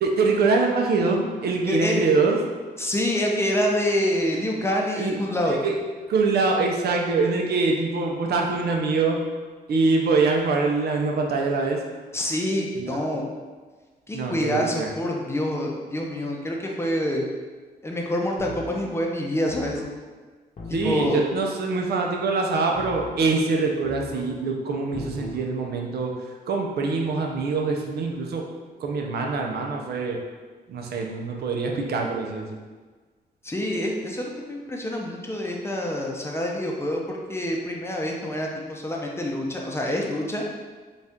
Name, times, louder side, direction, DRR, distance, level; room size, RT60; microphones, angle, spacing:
voice 1, 0.0-2.4 5.0-5.2 5.5-5.8 6.1-9.2 9.7-11.8 12.7-13.0 14.1-14.9 20.7-26.1 26.5-28.5 28.8-30.2 30.7-32.6, right 4 dB, 70° right, 1 dB, 0.6 m, -24 dB
voice 2, 1.7-2.0 2.8-5.6 12.1-13.2 14.1-17.3 17.8-19.8 20.8-21.3 33.4-40.4, left 1 dB, 15° left, -1 dB, 0.6 m, -26 dB
sound 1, 18.4-18.9 19.5-19.9 20.6-21.1 22.7-23.3 23.8-24.3 24.9-25.4, left 2 dB, 45° left, 0.8 m, -38 dB
4.0 x 2.4 x 3.5 m, 1.4 s
cardioid pair, 95°, 17 cm